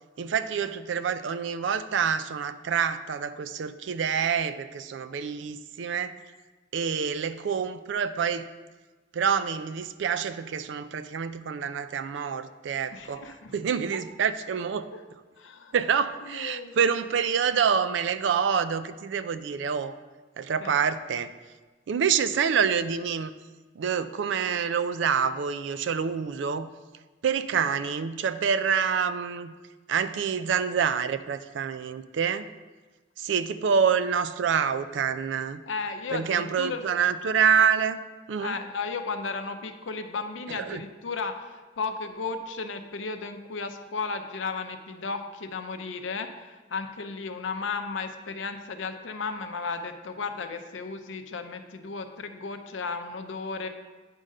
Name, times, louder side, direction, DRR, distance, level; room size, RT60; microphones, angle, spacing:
voice 1, 0.2-6.2 6.7-8.5 9.1-14.9 15.7-20.0 20.4-21.3 21.9-23.3 23.8-26.7 27.2-29.5 29.9-32.5 33.2-35.6 36.1-38.0 38.3-38.6 40.5-40.8, right 7 dB, 70° right, 12 dB, 0.4 m, -27 dB
voice 2, 12.9-13.5 13.9-14.0 14.9-15.0 15.4-15.7 16.3-16.7 20.6-20.8 35.7-36.8 38.4-53.7, left 4 dB, 80° left, 7 dB, 0.6 m, -34 dB
8.9 x 3.7 x 5.3 m, 1.3 s
head